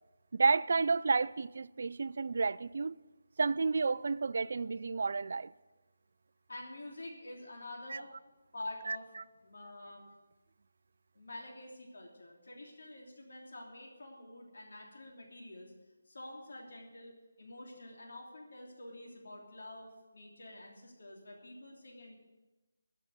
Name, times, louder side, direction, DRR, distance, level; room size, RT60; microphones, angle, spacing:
voice 1, 0.3-3.0 3.4-5.5 7.9-8.0 8.9-9.0, right 4 dB, 55° right, 0.4 m, -31 dB
voice 2, 6.5-8.1 8.5-9.1 9.4-10.1 11.1-15.7 16.1-22.1, left 1 dB, 75° left, 3.2 m, -48 dB
13.5 x 7.3 x 8.0 m
figure-of-eight pair, 170°, 0 cm